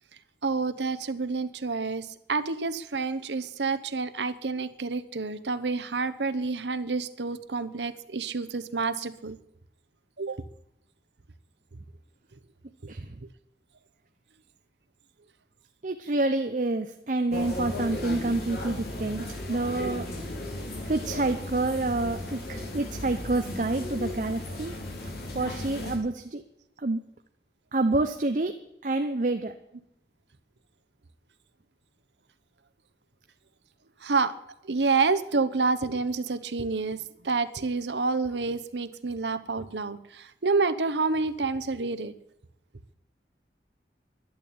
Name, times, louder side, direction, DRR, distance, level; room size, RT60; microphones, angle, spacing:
voice 1, 0.4-9.4 10.2-10.4 34.0-34.3 34.7-42.1, right 4 dB, 80° right, 13 dB, 1.0 m, -28 dB
voice 2, 15.8-20.1 20.8-24.7 25.3-26.4 26.8-27.0 27.7-29.6, right 2 dB, 45° right, 7 dB, 0.8 m, -28 dB
sound 1, 17.3-26.0, left 1 dB, 60° left, 3.3 m, -35 dB
11.5 x 11.0 x 8.7 m, 0.77 s
head